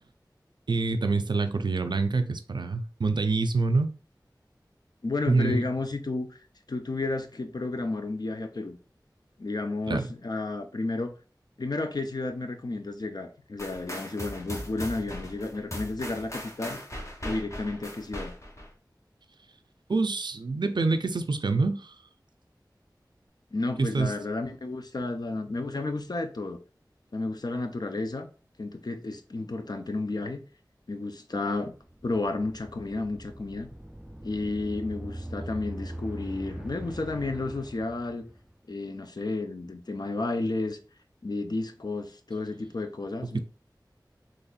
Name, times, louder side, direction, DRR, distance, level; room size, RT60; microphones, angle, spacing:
voice 1, 0.7-3.9 5.3-5.6 9.9-10.1 19.9-21.9 23.8-24.1 43.3-43.4, right 3 dB, 80° right, 0.4 m, -26 dB
voice 2, 5.0-6.3 6.7-8.8 9.4-11.1 11.6-16.8 17.2-18.3 23.5-26.6 27.1-28.3 28.6-30.4 30.9-31.7 32.0-33.7 34.2-38.2 38.7-40.8 41.2-43.4, left 2 dB, 65° left, 0.5 m, -32 dB
sound 1, 13.6-18.7, equal, 40° left, 0.9 m, -38 dB
sound 2, 31.7-38.6, right 1 dB, 10° right, 0.3 m, -41 dB
4.1 x 3.0 x 2.4 m
wide cardioid pair, 55°, 8 cm